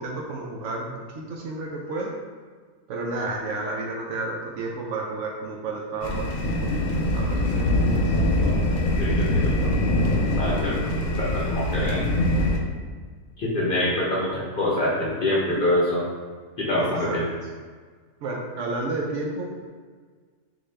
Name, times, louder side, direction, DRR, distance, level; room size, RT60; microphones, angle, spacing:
voice 1, 0.0-2.1 2.9-6.9 7.1-8.1 16.7-17.2 18.2-19.7, right 2 dB, 70° right, 0 dB, 0.8 m, -32 dB
sound 1, 6.0-12.6, left 1 dB, 70° left, 0.9 m, -23 dB
voice 2, 9.0-9.5 10.3-12.0 13.4-16.0 16.6-17.2, left 1 dB, 50° left, -6 dB, 0.7 m, -25 dB
3.9 x 2.6 x 3.2 m, 1.6 s
omnidirectional pair, 1.5 m